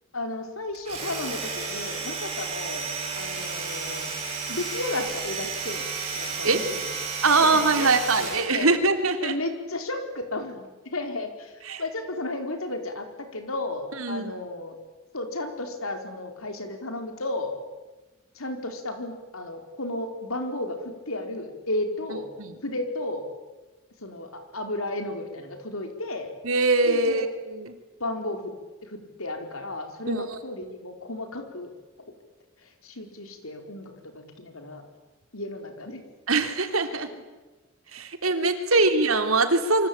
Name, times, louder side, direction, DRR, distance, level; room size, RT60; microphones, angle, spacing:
voice 1, 0.1-2.9 3.2-4.1 4.5-5.9 6.1-6.9 7.4-7.9 8.2-8.7 9.2-11.5 11.8-14.8 15.1-17.5 18.3-22.3 22.6-23.3 24.0-26.3 26.8-27.2 28.0-28.5 28.8-31.7 32.0-32.1 32.6-34.8 35.3-36.0 37.1-37.2 38.7-38.8, left 2 dB, 85° left, 5 dB, 4.7 m, -33 dB
Domestic sounds home sounds, 0.7-8.6, right 5 dB, 30° right, 7.8 m, -32 dB
voice 2, 7.2-9.3 11.7-11.8 14.0-14.3 22.4-22.5 26.4-27.3 27.5-27.6 30.1-30.2 36.3-37.1 37.9-39.9, right 3 dB, 85° right, 7 dB, 3.2 m, -22 dB
27.0 x 24.5 x 8.9 m, 1.2 s
head